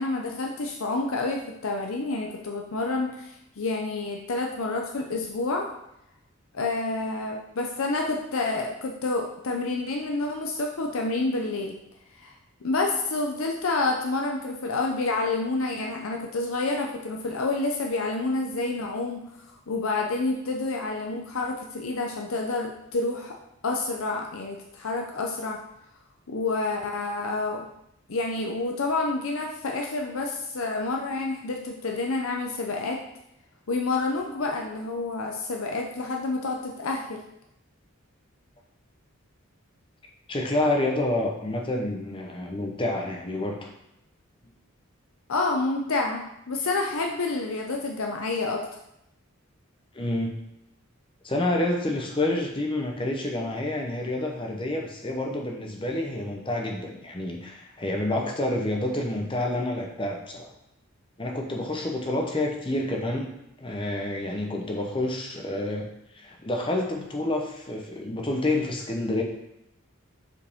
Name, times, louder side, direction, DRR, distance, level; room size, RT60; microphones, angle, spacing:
voice 1, 0.0-5.6 6.5-11.8 12.2-12.3 12.6-19.2 19.7-23.4 23.6-25.6 26.3-27.7 28.1-33.0 33.7-37.2 45.3-48.7, left 3 dB, 75° left, 1 dB, 0.6 m, -28 dB
voice 2, 40.3-43.7 49.9-50.3 51.2-60.5 61.2-63.3 63.6-65.9 66.1-69.2, left 1 dB, 25° left, 1 dB, 0.8 m, -28 dB
7.1 x 4.8 x 3.6 m, 0.82 s
head